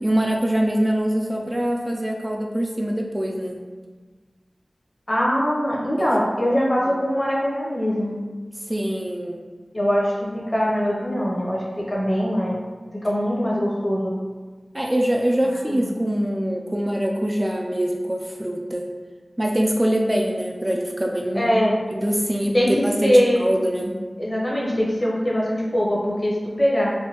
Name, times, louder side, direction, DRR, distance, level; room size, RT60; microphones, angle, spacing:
voice 1, 0.0-3.6 6.0-6.1 8.7-9.4 14.7-18.9 19.4-21.6 21.9-23.9, equal, 25° right, 0 dB, 0.3 m, -24 dB
voice 2, 5.1-8.1 9.7-12.6 13.0-14.1 15.7-15.9 21.3-21.8 22.5-23.4 24.2-26.9, equal, 40° left, -4 dB, 0.8 m, -22 dB
3.4 x 2.2 x 2.8 m, 1.4 s
wide cardioid pair, 55°, 0 cm